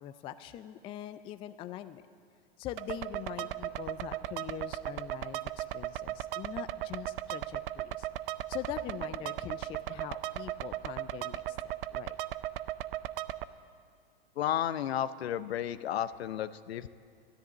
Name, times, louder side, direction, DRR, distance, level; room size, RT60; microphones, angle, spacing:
voice 1, 0.0-2.1 2.6-8.1 8.5-12.2, left 11 dB, 15° left, 12 dB, 0.3 m, -43 dB
sound 1, 2.8-13.4, right 14 dB, 55° right, 0.5 m, -37 dB
voice 2, 14.4-16.9, left 10 dB, 70° left, 15 dB, 0.6 m, -32 dB
13.0 x 10.5 x 8.2 m, 2.1 s
hypercardioid pair, 110°, 32 cm